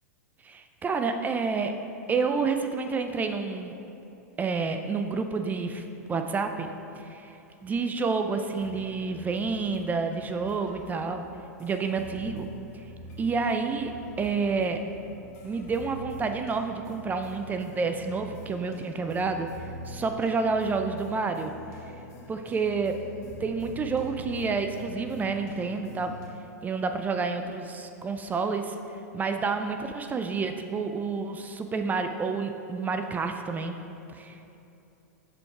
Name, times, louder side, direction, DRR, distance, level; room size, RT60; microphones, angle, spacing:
voice 1, 0.4-1.7 2.1-3.7 4.4-5.8 6.1-6.7 7.0-7.3 7.6-11.3 11.6-12.5 12.7-12.8 13.2-13.9 14.2-14.8 15.4-21.5 22.3-22.9 23.4-26.1 26.6-33.8 34.1-34.6, right 4 dB, 20° right, 6 dB, 0.3 m, -29 dB
sound 1, 8.6-26.3, equal, 45° left, 1.2 m, -45 dB
6.4 x 5.2 x 4.6 m, 2.9 s
hypercardioid pair, 110°, 9 cm